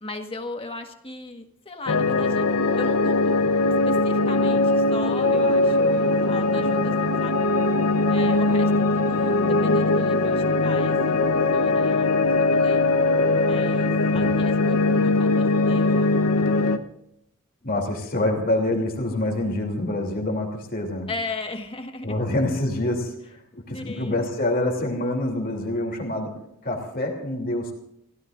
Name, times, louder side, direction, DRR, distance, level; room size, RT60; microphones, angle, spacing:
voice 1, 0.0-2.5 2.8-3.4 3.9-7.3 8.1-12.8 13.4-16.8 21.1-22.2 23.7-24.2, left 2 dB, 25° left, 4 dB, 1.6 m, -37 dB
sound 1, 1.9-16.8, left 2 dB, 85° left, 1.0 m, -21 dB
voice 2, 17.6-21.1 22.0-26.3 26.6-27.7, left 1 dB, 40° left, 1 dB, 3.1 m, -26 dB
30.0 x 17.0 x 2.6 m, 0.74 s
head